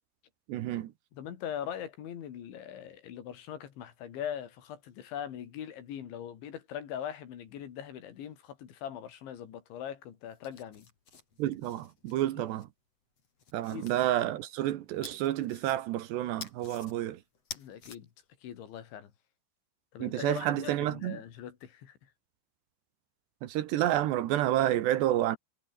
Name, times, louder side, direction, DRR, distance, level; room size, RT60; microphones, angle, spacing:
voice 1, 0.5-0.9 11.4-12.7 13.5-17.2 20.0-21.2 23.4-25.4, right 13 dB, 70° right, 3.2 m, -29 dB
voice 2, 1.1-10.9 12.4-12.5 13.7-13.9 17.5-18.1 18.4-19.1 19.9-22.1, left 9 dB, 75° left, 5.1 m, -41 dB
sound 1, 10.3-12.6 13.2-14.0 15.0-16.0 16.4-16.9 17.3-18.0, left 5 dB, 35° left, 4.1 m, -48 dB
omnidirectional pair, 5.4 m